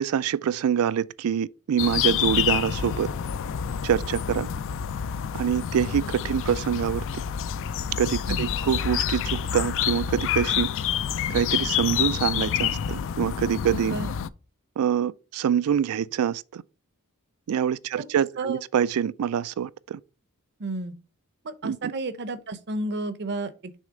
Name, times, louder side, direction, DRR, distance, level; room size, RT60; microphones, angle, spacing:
voice 1, 0.0-3.1 3.8-4.5 5.3-7.0 8.0-10.7 11.3-13.9 14.8-16.6 17.5-20.0 21.6-21.9, right 8 dB, 70° right, 0.3 m, -25 dB
sound 1, 1.8-14.3, left 9 dB, 60° left, 0.4 m, -28 dB
voice 2, 20.6-20.9 21.4-23.8, right 2 dB, 50° right, 0.7 m, -32 dB
6.4 x 3.3 x 5.0 m
head